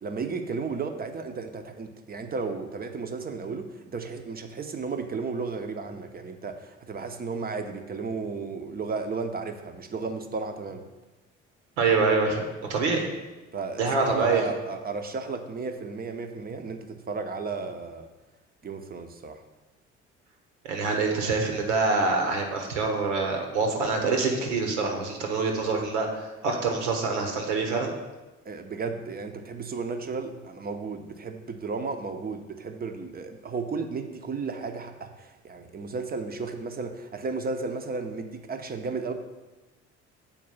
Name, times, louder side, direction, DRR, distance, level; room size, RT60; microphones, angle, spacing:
voice 1, 0.0-10.8 13.5-18.1 18.6-19.4 28.4-39.1, right 4 dB, 25° right, 7 dB, 0.8 m, -34 dB
voice 2, 11.8-12.4 12.7-13.1 13.8-14.5 20.6-27.9, right 4 dB, 70° right, 3 dB, 1.3 m, -25 dB
7.2 x 4.6 x 5.5 m, 1.1 s
figure-of-eight pair, 50°, 36 cm